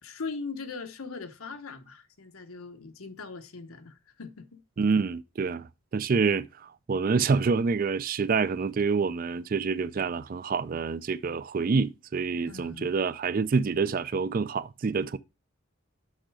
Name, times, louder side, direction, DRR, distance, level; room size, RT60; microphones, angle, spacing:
voice 1, 0.0-4.6 12.4-12.9, left 4 dB, 90° left, 1.0 m, -40 dB
voice 2, 4.8-15.2, right 5 dB, 40° right, 0.4 m, -27 dB
6.5 x 6.4 x 4.7 m
head